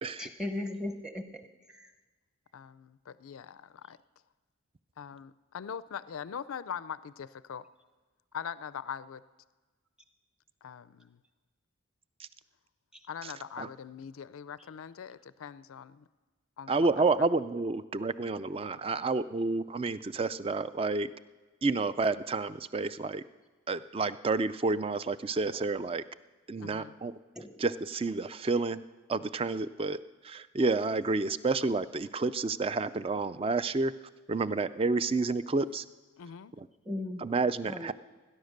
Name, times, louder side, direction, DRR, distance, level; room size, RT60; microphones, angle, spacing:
voice 1, 0.2-1.4 1.7-1.9 27.4-27.6 36.8-37.3 37.6-37.9, left 1 dB, 5° right, 7 dB, 0.9 m, -37 dB
voice 2, 2.5-4.0 5.0-7.6 8.3-9.2 10.6-11.2 13.1-16.1 16.6-17.0 26.6-27.0 36.2-36.5, left 7 dB, 80° left, 16 dB, 0.4 m, -42 dB
voice 3, 16.7-21.1 21.6-23.2 23.7-26.0 26.5-27.1 27.6-28.8 29.1-30.0 30.2-33.9 34.3-35.8 36.6-36.7 37.2-37.9, right 3 dB, 25° right, 15 dB, 0.4 m, -30 dB
18.0 x 10.5 x 6.6 m, 1.3 s
head